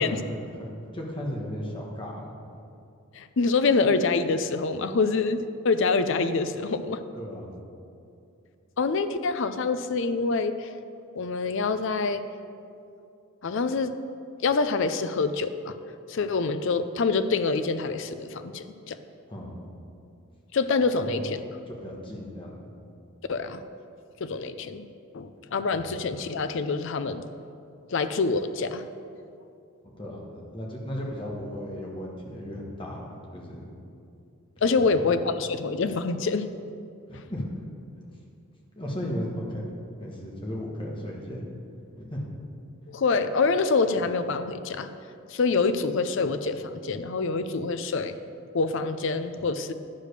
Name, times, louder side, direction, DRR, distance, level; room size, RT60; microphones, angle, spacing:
voice 1, 0.0-2.3 7.2-7.5 19.3-19.6 20.9-21.3 21.7-22.6 30.0-33.7 34.6-34.9 37.1-37.6 38.8-39.6 40.0-41.4 42.0-42.3, equal, 25° left, -2 dB, 1.3 m, -35 dB
voice 2, 3.1-7.0 8.8-10.7 11.1-12.2 13.4-13.9 14.4-15.7 16.1-19.0 20.5-21.4 23.3-23.6 24.2-24.8 25.1-27.2 27.9-28.8 34.6-36.5 37.1-37.2 42.9-44.9 45.3-48.1 48.5-49.7, left 4 dB, 55° left, 10 dB, 0.4 m, -26 dB
10.5 x 5.0 x 6.6 m, 2.5 s
head